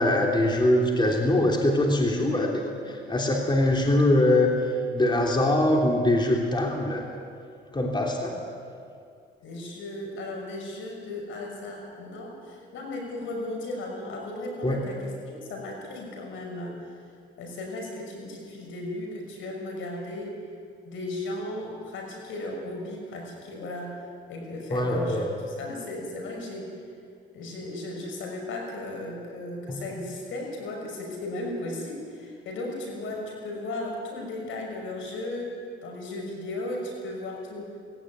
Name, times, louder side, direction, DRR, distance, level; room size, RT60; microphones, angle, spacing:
voice 1, 0.0-7.1 7.7-8.4 14.6-14.8 24.7-25.3 29.7-29.8, left 1 dB, 25° left, 0 dB, 3.5 m, -23 dB
voice 2, 9.4-16.8 17.4-20.4 20.8-24.0 24.3-26.7 27.3-35.6 35.8-37.7, left 2 dB, 80° left, 1 dB, 6.1 m, -36 dB
20.0 x 17.0 x 9.5 m, 2.3 s
cardioid pair, 90°, 20 cm